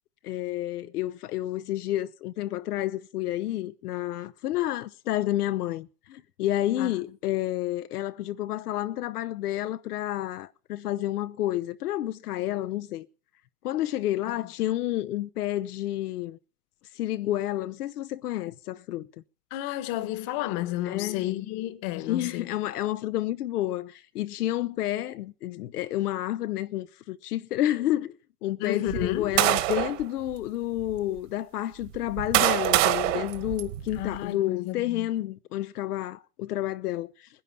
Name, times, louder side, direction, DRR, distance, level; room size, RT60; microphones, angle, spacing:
voice 1, 0.2-13.1 13.6-16.4 16.9-19.1 20.9-21.3 22.1-28.1 28.4-37.3, left 14 dB, 80° left, 0.9 m, -30 dB
voice 2, 19.5-22.5 28.6-29.4 33.9-35.1, left 15 dB, 40° left, 1.3 m, -31 dB
sound 1, 28.9-30.0 30.8-30.9 31.8-34.2, right 15 dB, 50° right, 1.7 m, -25 dB
19.5 x 11.0 x 5.6 m
supercardioid pair, 155°, 45 cm